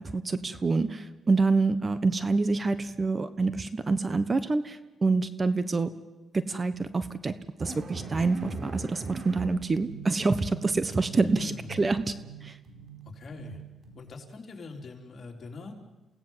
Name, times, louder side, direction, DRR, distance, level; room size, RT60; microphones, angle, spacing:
voice 1, 0.1-5.9 6.3-7.3 7.6-12.1 12.4-12.5, right 3 dB, 30° right, 13 dB, 1.1 m, -26 dB
sound 1, 7.6-14.0, right 3 dB, 55° right, 3.8 m, -41 dB
voice 2, 11.1-11.8 13.1-13.6 14.0-15.7, left 4 dB, 45° left, 2 dB, 4.1 m, -43 dB
28.5 x 17.0 x 7.6 m, 1.1 s
cardioid pair, 95°, 0 cm